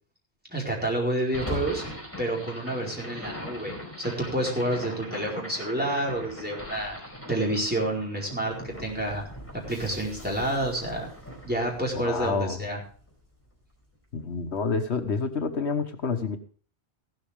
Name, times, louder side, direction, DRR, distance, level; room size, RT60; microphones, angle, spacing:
voice 1, 0.5-1.8 2.2-7.0 7.3-9.2 9.5-11.1 11.4-12.8, right 1 dB, 10° right, -2 dB, 4.6 m, -29 dB
sound 1, 1.3-13.5, left 1 dB, 10° left, 4.1 m, -40 dB
voice 2, 12.0-12.6 14.1-16.4, left 4 dB, 80° left, 7 dB, 1.5 m, -28 dB
15.5 x 12.5 x 3.5 m, 0.41 s
omnidirectional pair, 1.1 m